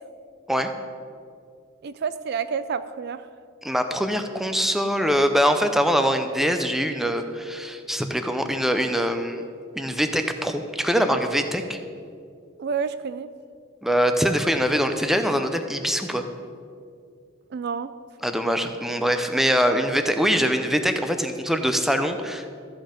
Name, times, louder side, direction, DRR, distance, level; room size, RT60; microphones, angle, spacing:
voice 1, 1.8-3.2 12.6-13.3 17.5-17.9, right 6 dB, 55° right, 13 dB, 0.3 m, -29 dB
voice 2, 3.6-9.4 9.7-11.8 13.8-16.2 18.2-22.5, equal, ahead, 7 dB, 0.6 m, -23 dB
13.5 x 7.7 x 5.2 m, 2.3 s
head